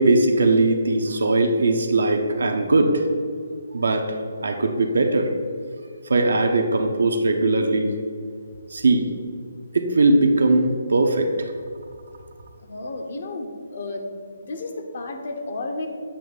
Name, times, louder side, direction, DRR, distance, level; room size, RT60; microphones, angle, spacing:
voice 1, 0.0-3.0 3.7-4.1 4.4-5.3 6.1-7.9 8.7-9.1 9.7-11.3, right 2 dB, 75° right, 4 dB, 0.8 m, -19 dB
voice 2, 12.6-14.1 14.4-15.9, left 2 dB, 55° left, 4 dB, 0.9 m, -32 dB
8.5 x 2.8 x 5.5 m, 2.2 s
hypercardioid pair, 155°, 0 cm